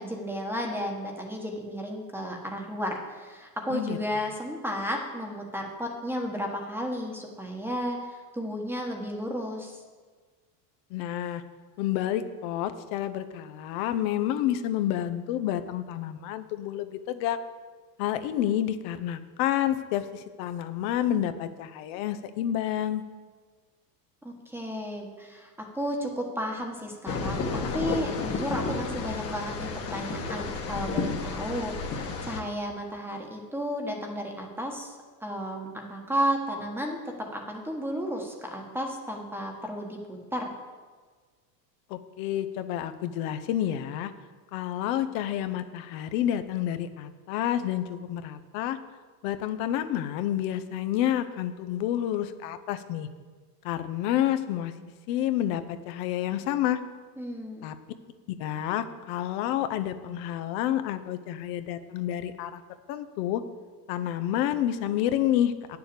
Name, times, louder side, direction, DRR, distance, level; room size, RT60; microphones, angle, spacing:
voice 1, 0.0-9.8 24.2-34.9 35.2-40.5 57.2-57.7, equal, 5° right, 1 dB, 1.2 m, -33 dB
voice 2, 10.9-11.4 11.8-17.4 18.0-23.0 41.9-44.1 44.5-48.8 49.2-53.1 53.6-54.7 55.1-56.8 57.6-57.7 58.3-62.6 62.9-63.4 63.9-65.8, left 11 dB, 55° left, 10 dB, 0.9 m, -29 dB
sound 1, 27.1-32.4, left 4 dB, 30° left, 1.3 m, -31 dB
9.3 x 7.0 x 6.8 m, 1.5 s
supercardioid pair, 135°, 49 cm